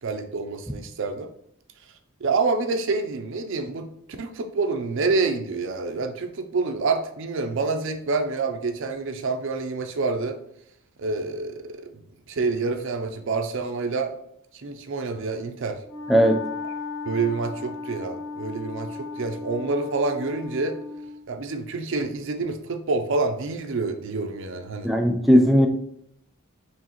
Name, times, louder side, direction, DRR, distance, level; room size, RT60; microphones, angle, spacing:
voice 1, 0.0-1.3 2.2-3.9 4.2-10.4 11.0-11.9 12.3-14.1 14.5-15.8 17.1-20.8 21.3-24.9, right 3 dB, 60° right, 6 dB, 0.5 m, -27 dB
Wind instrument woodwind instrument, 15.8-21.2, left 4 dB, 20° left, 1.1 m, -35 dB
voice 2, 16.1-16.4 24.8-25.7, equal, ahead, 3 dB, 0.3 m, -17 dB
4.7 x 3.1 x 3.0 m, 0.74 s
head